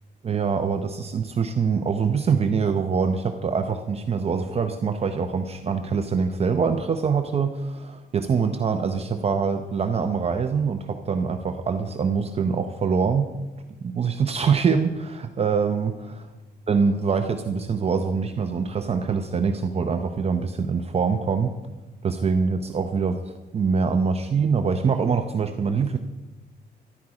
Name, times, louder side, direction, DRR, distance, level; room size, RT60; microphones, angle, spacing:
voice 1, 0.2-13.3 13.8-16.2 16.7-21.6 22.0-26.0, right 5 dB, 35° right, 6 dB, 0.7 m, -24 dB
14.0 x 12.0 x 4.8 m, 1.1 s
wide cardioid pair, 165°, 18 cm